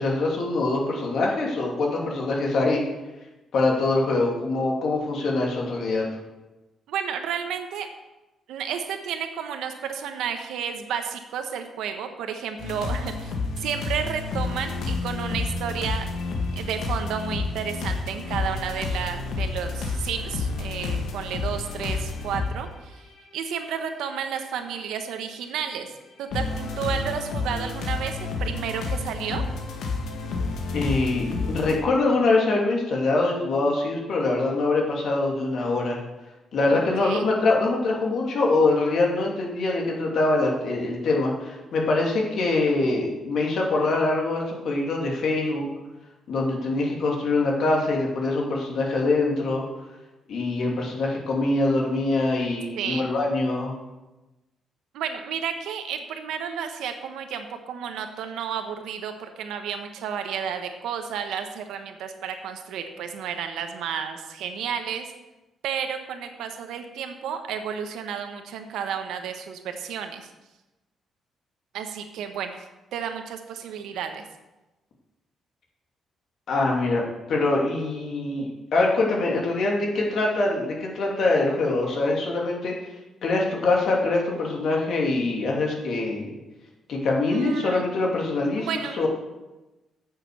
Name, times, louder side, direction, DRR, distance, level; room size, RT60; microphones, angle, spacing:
voice 1, 0.0-2.8 3.5-6.1 30.7-36.0 36.5-45.7 46.3-49.6 50.3-53.7 76.5-77.0 77.3-82.7 83.2-86.3 86.9-89.1, left 2 dB, 65° left, -1 dB, 2.8 m, -24 dB
voice 2, 6.9-7.9 8.5-13.3 13.6-16.1 16.5-23.1 23.3-25.9 26.2-29.4 36.7-37.3 52.8-53.0 54.9-65.1 65.6-70.3 71.7-72.6 72.9-74.2 87.3-87.8 88.6-89.1, right 7 dB, 90° right, 6 dB, 1.2 m, -32 dB
sound 1, 12.6-22.5 23.2-23.3 24.2-24.3 26.3-31.8, left 3 dB, 80° left, 1.5 m, -30 dB
9.0 x 6.9 x 6.9 m, 1.1 s
cardioid pair, 100°, 0 cm